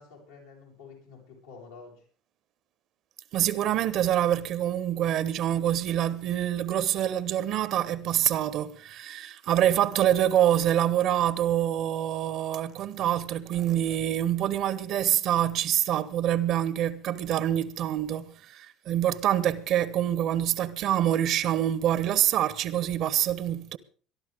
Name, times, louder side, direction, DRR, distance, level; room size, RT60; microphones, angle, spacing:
voice 1, 0.0-2.0, left 5 dB, 90° left, 7.8 m, -49 dB
voice 2, 3.3-23.8, right 11 dB, 60° right, 1.2 m, -26 dB
22.5 x 12.0 x 3.6 m
hypercardioid pair, 70°, 0 cm